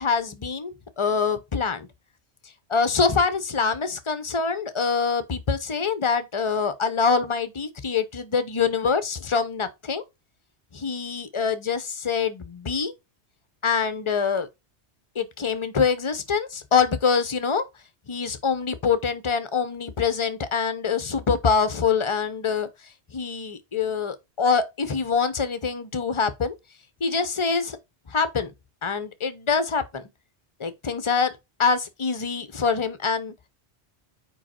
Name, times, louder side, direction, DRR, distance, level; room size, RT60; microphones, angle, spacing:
voice 1, 0.0-1.9 2.7-10.0 10.7-12.9 13.6-14.5 15.2-17.6 18.1-22.7 23.1-26.5 27.0-27.8 28.1-28.5 28.8-30.0 30.6-31.3 31.6-33.3, left 5 dB, 35° left, 0.6 m, -25 dB
5.0 x 4.8 x 4.3 m
omnidirectional pair, 1.1 m